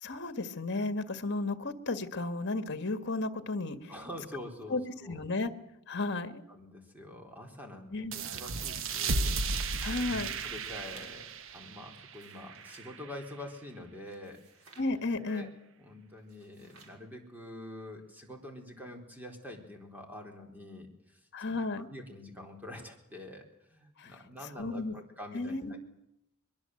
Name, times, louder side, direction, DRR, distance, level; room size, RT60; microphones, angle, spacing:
voice 1, 0.0-3.9 4.7-4.8 5.1-5.5 5.9-6.4 7.9-8.1 9.8-10.3 14.8-15.5 21.3-21.9 24.0-24.1 24.6-24.9 25.3-25.8, left 2 dB, 55° left, 10 dB, 1.8 m, -33 dB
voice 2, 3.9-5.2 6.5-10.0 10.4-14.6 15.2-15.5 15.8-21.6 21.9-25.8, left 1 dB, 10° right, 2 dB, 4.2 m, -46 dB
sound 1, 8.1-13.3, right 3 dB, 65° right, 1.1 m, -35 dB
sound 2, 10.6-11.3 12.0-12.9 14.1-14.9 16.2-17.0, right 3 dB, 85° right, 6.0 m, -57 dB
23.0 x 22.5 x 7.9 m, 0.83 s
head